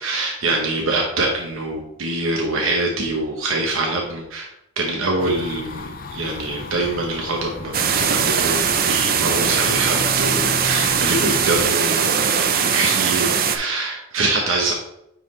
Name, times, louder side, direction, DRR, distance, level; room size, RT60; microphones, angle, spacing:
voice 1, 0.0-4.5 4.8-5.9 6.1-14.7, right 2 dB, 85° right, 0 dB, 1.0 m, -24 dB
sound 1, 5.2-11.7, left 3 dB, 45° left, 0.5 m, -34 dB
sound 2, 7.7-13.6, right 7 dB, 45° right, 0.5 m, -20 dB
9.1 x 3.9 x 3.2 m, 0.79 s
head